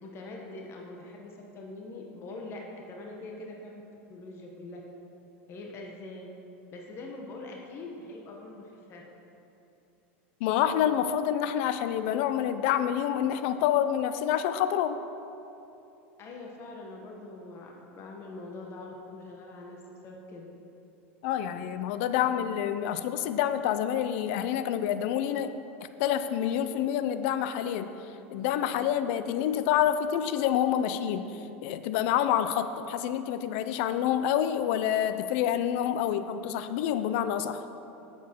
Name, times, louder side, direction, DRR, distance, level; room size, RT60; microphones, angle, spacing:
voice 1, 0.0-3.8 4.1-4.8 5.5-6.3 6.7-9.0 16.2-20.5, left 2 dB, 40° left, 0 dB, 1.1 m, -43 dB
voice 2, 10.4-15.0 21.2-25.5 26.0-27.9 28.3-31.3 31.6-37.6, left 10 dB, 65° left, 11 dB, 0.5 m, -27 dB
8.0 x 7.2 x 4.5 m, 2.9 s
supercardioid pair, 110°, 7 cm